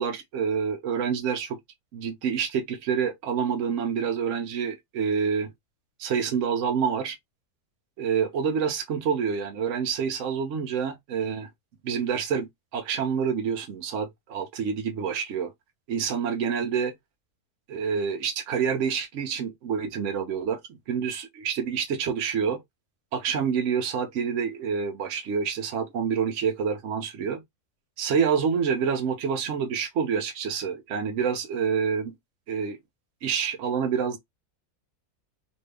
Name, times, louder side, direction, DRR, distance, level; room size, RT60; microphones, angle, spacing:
voice 1, 0.0-1.6 1.9-5.5 6.0-7.2 8.0-11.5 11.8-15.5 15.9-16.9 17.7-20.6 20.9-22.6 23.1-27.4 28.0-32.1 32.5-32.8 33.2-34.2, right 6 dB, 65° right, 0.8 m, -27 dB
2.6 x 2.6 x 3.3 m
omnidirectional pair, 1.6 m